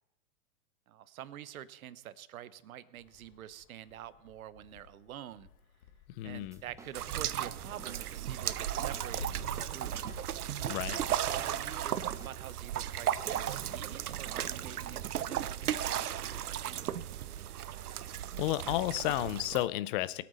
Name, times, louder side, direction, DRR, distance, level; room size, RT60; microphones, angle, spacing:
voice 1, 0.9-5.5 6.2-10.0 11.4-16.9, right 11 dB, 70° right, 15 dB, 1.1 m, -47 dB
Wind, 3.0-17.9, left 7 dB, 70° left, 1.7 m, -55 dB
voice 2, 6.2-6.6 10.7-11.0 18.4-20.2, left 16 dB, 35° left, 16 dB, 0.6 m, -32 dB
sound 1, 6.3-15.2, right 4 dB, 5° right, 0.8 m, -55 dB
sound 2, 6.9-19.7, right 11 dB, 85° right, 0.7 m, -35 dB
22.0 x 8.5 x 4.1 m, 0.95 s
hypercardioid pair, 120°, 44 cm